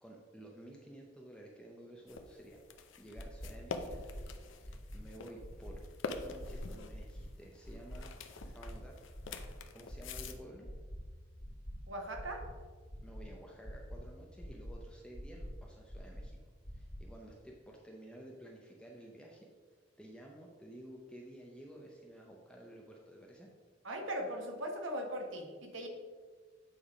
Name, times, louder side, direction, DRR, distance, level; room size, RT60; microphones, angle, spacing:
voice 1, 0.0-2.6 3.0-4.1 4.6-8.1 8.4-9.0 9.7-10.7 13.0-16.4 16.7-19.5 20.0-23.5, right 1 dB, 5° left, -1 dB, 0.6 m, -52 dB
sound 1, 2.1-10.3, left 4 dB, 70° left, 0.6 m, -45 dB
sound 2, 3.2-3.5 3.9-4.2 4.6-5.0 5.4-5.7 6.1-6.5 6.9-7.2 7.6-8.0 8.4-8.7 9.1-9.5 9.9-10.2 10.6-11.0 11.4-11.7 12.1-12.5 12.9-13.2 13.6-14.0 14.4-14.7 15.1-15.5 15.9-16.2 16.6-17.0, equal, 45° left, 1.8 m, -45 dB
voice 2, 11.9-12.4 23.8-25.9, equal, 75° right, 2 dB, 1.2 m, -39 dB
8.7 x 3.4 x 4.9 m, 1.5 s
head